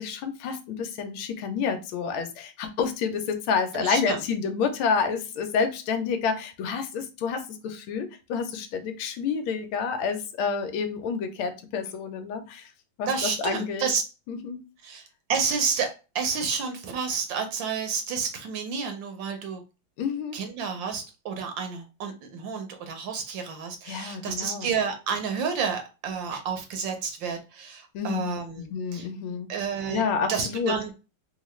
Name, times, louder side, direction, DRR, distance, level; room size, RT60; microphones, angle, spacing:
voice 1, 0.0-12.7 13.0-13.9 14.3-14.6 20.0-20.4 23.9-24.7 27.9-28.4 28.7-29.5 29.9-30.7, left 5 dB, 90° left, 7 dB, 1.5 m, -29 dB
voice 2, 3.7-4.2 13.1-14.0 14.8-15.0 15.3-19.6 20.3-29.1 29.5-30.0 30.3-30.9, right 6 dB, 70° right, 5 dB, 1.3 m, -30 dB
3.7 x 2.4 x 3.0 m, 0.30 s
omnidirectional pair, 2.2 m